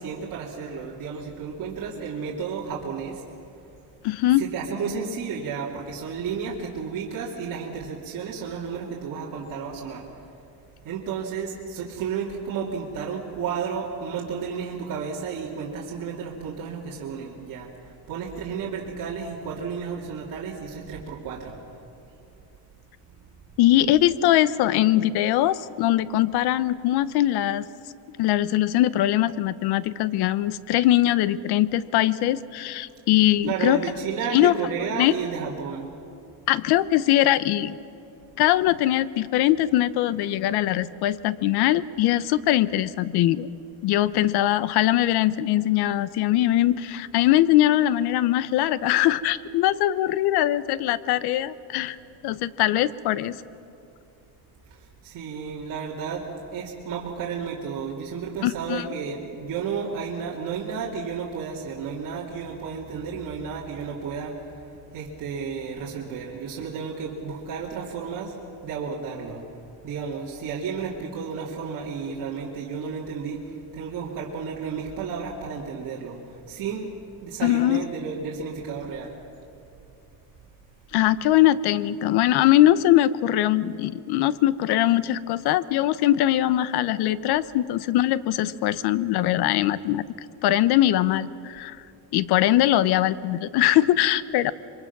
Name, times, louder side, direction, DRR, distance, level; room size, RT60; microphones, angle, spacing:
voice 1, 0.0-3.2 4.4-10.1 10.8-21.5 23.1-23.3 33.4-35.9 54.7-68.4 68.6-69.4 69.8-76.9 77.2-79.2, right 6 dB, 55° right, -5 dB, 2.9 m, -32 dB
voice 2, 4.0-4.4 23.6-27.7 28.2-33.8 34.3-34.5 34.9-35.1 36.5-37.8 38.4-43.5 43.8-52.0 52.2-53.4 58.4-58.9 77.4-77.8 80.9-90.0 90.4-91.8 92.1-94.5, left 14 dB, 75° left, 17 dB, 0.8 m, -21 dB
27.0 x 23.5 x 6.0 m, 2.8 s
cardioid pair, 145°, 39 cm